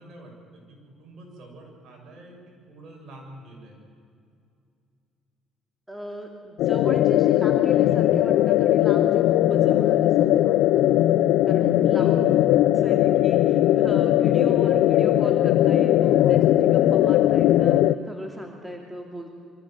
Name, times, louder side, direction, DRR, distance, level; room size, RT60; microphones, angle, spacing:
voice 1, 0.0-3.8 11.9-13.1 16.2-16.4, right 1 dB, 55° right, 0 dB, 6.7 m, -47 dB
voice 2, 5.9-10.8 11.5-12.2 12.7-16.4 16.7-19.3, equal, 5° right, 2 dB, 2.8 m, -37 dB
sound 1, 6.6-17.9, left 13 dB, 80° left, 0.5 m, -19 dB
24.5 x 15.0 x 7.6 m, 2.4 s
supercardioid pair, 85°, 0 cm